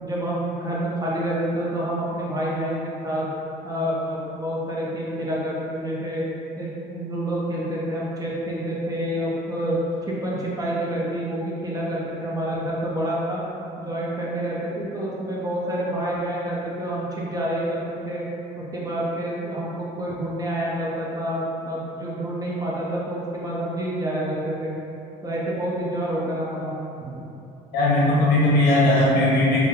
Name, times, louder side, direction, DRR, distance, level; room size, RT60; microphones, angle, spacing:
voice 1, 0.0-3.3 3.6-6.2 6.6-9.8 10.1-13.4 13.8-18.3 18.6-24.7 25.2-26.7 27.0-27.2, right 1 dB, 20° right, -5 dB, 0.7 m, -28 dB
voice 2, 27.7-29.7, left 1 dB, 70° left, -6 dB, 1.0 m, -18 dB
3.5 x 2.1 x 3.7 m, 2.8 s
cardioid pair, 110°, 17 cm